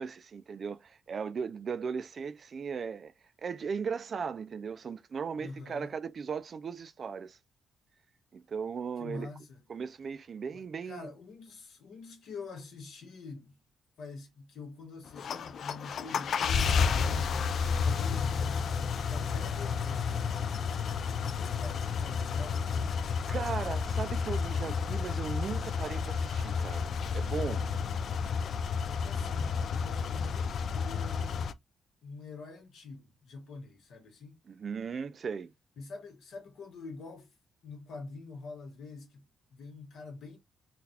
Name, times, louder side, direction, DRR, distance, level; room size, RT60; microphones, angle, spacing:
voice 1, 0.0-3.1 3.4-7.4 8.3-9.3 9.7-11.1 23.3-27.7 34.5-35.5, right 6 dB, 45° right, 0.3 m, -37 dB
voice 2, 5.4-5.9 9.0-9.6 10.5-13.6 14.0-18.7 19.1-20.3 21.2-22.9 28.8-31.5 32.0-34.4 35.8-37.3 37.6-40.4, left 3 dB, 80° left, 1.4 m, -46 dB
sound 1, 15.1-31.5, left 6 dB, 60° left, 0.3 m, -31 dB
3.8 x 2.4 x 2.8 m
cardioid pair, 120°, 0 cm